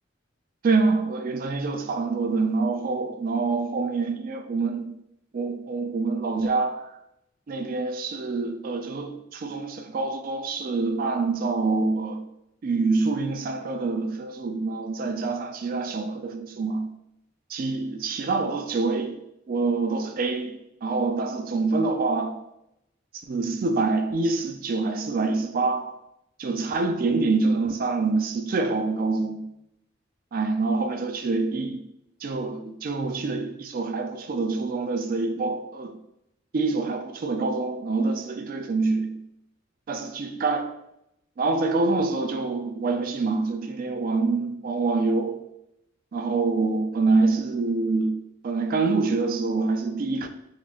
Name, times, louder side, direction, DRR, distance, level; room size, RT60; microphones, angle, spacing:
voice 1, 0.6-5.0 5.3-6.9 7.5-12.3 12.6-16.9 17.5-22.4 23.3-25.9 26.4-29.5 30.3-31.9 32.2-36.0 36.5-39.2 39.9-40.6 41.4-45.4 46.1-50.3, right 3 dB, 45° right, 0.3 m, -26 dB
3.9 x 3.0 x 2.3 m
head